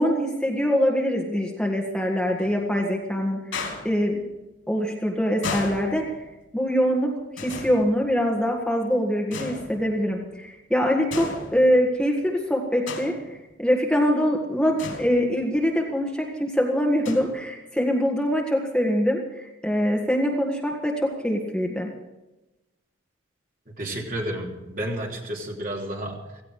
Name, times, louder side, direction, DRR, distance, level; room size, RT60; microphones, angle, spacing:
voice 1, 0.0-3.4 3.8-4.2 4.7-6.0 6.5-7.1 7.4-11.3 11.5-13.1 13.6-21.9, equal, 5° left, -1 dB, 1.8 m, -23 dB
sound 1, 2.4-2.8 3.5-4.1 5.4-6.5 7.4-8.5 9.3-10.2 11.1-12.0 12.9-13.5 14.8-15.7 17.1-17.4, left 3 dB, 90° left, 3.9 m, -35 dB
voice 2, 23.7-26.4, right 1 dB, 45° right, -1 dB, 3.2 m, -31 dB
17.0 x 16.0 x 4.9 m, 1.0 s
head